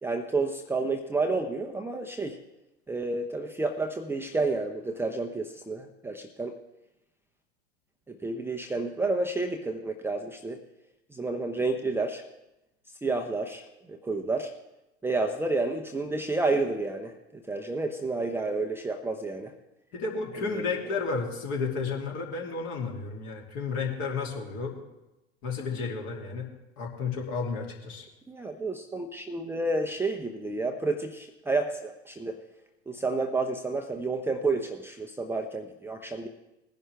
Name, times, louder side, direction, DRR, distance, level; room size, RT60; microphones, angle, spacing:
voice 1, 0.0-2.4 2.9-6.6 8.1-10.6 11.1-12.2 13.0-14.5 15.0-17.1 17.5-19.5 20.4-20.9 28.3-32.4 32.9-36.3, right 3 dB, 5° right, 3 dB, 0.7 m, -30 dB
voice 2, 19.9-24.8 25.4-26.5 26.8-28.0, left 4 dB, 45° left, 0 dB, 2.7 m, -32 dB
20.0 x 10.5 x 3.4 m, 0.95 s
figure-of-eight pair, 90°, 35 cm